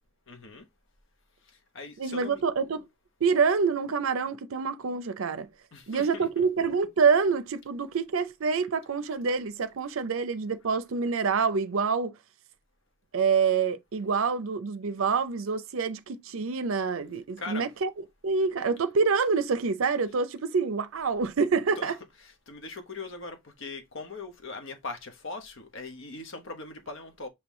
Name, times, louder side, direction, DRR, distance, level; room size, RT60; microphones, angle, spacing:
voice 1, 0.3-0.7 1.4-2.4 5.7-6.3 17.4-17.7 21.8-21.9 22.2-27.3, left 3 dB, 60° left, 1.0 m, -40 dB
voice 2, 2.0-2.9 3.2-5.5 5.9-12.1 13.1-17.9 18.2-22.0, right 5 dB, 70° right, 0.5 m, -26 dB
5.4 x 3.0 x 3.1 m
head